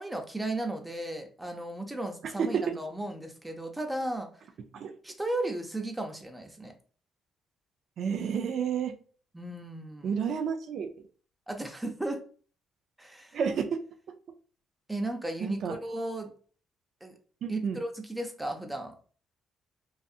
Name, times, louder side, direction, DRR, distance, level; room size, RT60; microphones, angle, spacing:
voice 1, 0.0-4.3 5.0-6.7 9.3-10.2 11.5-12.2 13.0-13.4 14.9-16.3 17.0-17.1 17.5-18.9, right 1 dB, 10° right, 4 dB, 0.6 m, -35 dB
voice 2, 2.4-2.8 4.7-4.9 8.0-8.9 10.0-10.9 13.3-13.7 15.4-15.7 17.4-17.8, right 7 dB, 65° right, 7 dB, 0.3 m, -30 dB
2.6 x 2.4 x 2.3 m, 0.41 s
cardioid pair, 90°, 0 cm